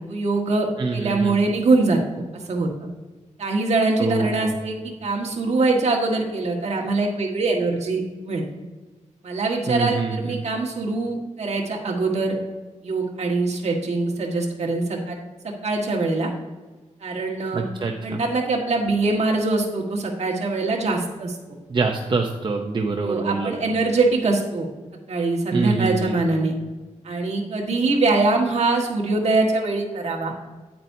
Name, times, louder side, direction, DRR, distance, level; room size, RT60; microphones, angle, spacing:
voice 1, 0.1-2.2 2.5-2.7 3.4-8.4 9.2-12.3 12.8-15.2 15.6-16.3 17.0-17.6 18.0-21.4 23.0-24.7 25.1-26.5 27.0-30.3, right 3 dB, 60° right, -1 dB, 1.6 m, -23 dB
voice 2, 0.8-1.4 4.0-4.5 9.7-10.4 17.5-18.2 21.7-23.5 25.5-26.1, right 4 dB, 40° right, 2 dB, 0.7 m, -25 dB
9.3 x 8.7 x 2.7 m, 1.3 s
wide cardioid pair, 155°, 13 cm